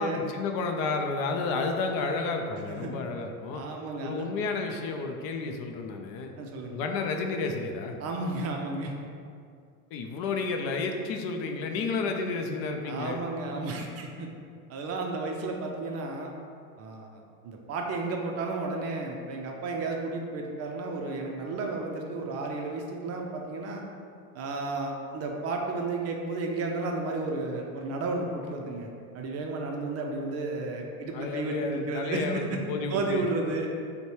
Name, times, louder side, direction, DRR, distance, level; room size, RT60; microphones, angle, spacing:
voice 1, 0.0-3.6 4.0-6.3 6.7-8.0 9.9-13.2 31.1-33.2, left 4 dB, 50° left, 4 dB, 0.5 m, -31 dB
voice 2, 3.5-4.2 6.4-6.8 8.0-8.9 12.8-14.3 14.7-16.3 16.8-17.1 17.4-23.8 24.3-28.9 29.1-32.6 32.9-33.7, right 3 dB, 35° right, 1 dB, 0.4 m, -32 dB
5.3 x 2.2 x 3.0 m, 2.3 s
supercardioid pair, 105°, 44 cm